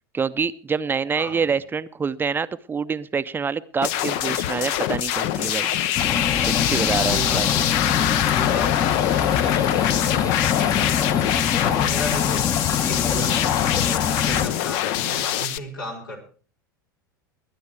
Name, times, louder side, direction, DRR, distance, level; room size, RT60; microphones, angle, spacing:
voice 1, 0.1-5.7 6.3-7.5, right 5 dB, 20° right, 13 dB, 0.6 m, -26 dB
voice 2, 1.2-1.5 7.0-7.7 8.3-11.2 11.6-16.2, equal, 85° left, -1 dB, 4.8 m, -35 dB
sound 1, 3.8-15.6, left 12 dB, 50° left, 0.7 m, -24 dB
sound 2, 6.0-14.5, left 8 dB, 30° left, 1.1 m, -24 dB
21.5 x 9.5 x 4.6 m, 0.41 s
figure-of-eight pair, 85°, 11 cm